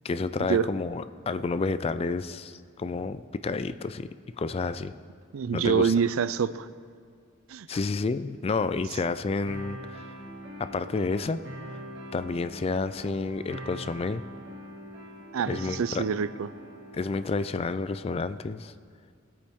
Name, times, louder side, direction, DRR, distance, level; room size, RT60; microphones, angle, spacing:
voice 1, 0.0-4.1 4.4-4.9 5.5-5.9 7.7-10.1 10.6-11.4 12.1-14.2 15.5-16.0 16.9-18.7, left 4 dB, 30° left, 13 dB, 0.3 m, -30 dB
voice 2, 5.3-6.7 7.5-7.7 15.3-16.5, right 6 dB, 80° right, 15 dB, 0.4 m, -26 dB
sound 1, 9.5-17.5, equal, 55° right, 2.2 m, -43 dB
19.5 x 8.5 x 3.6 m, 2.1 s
head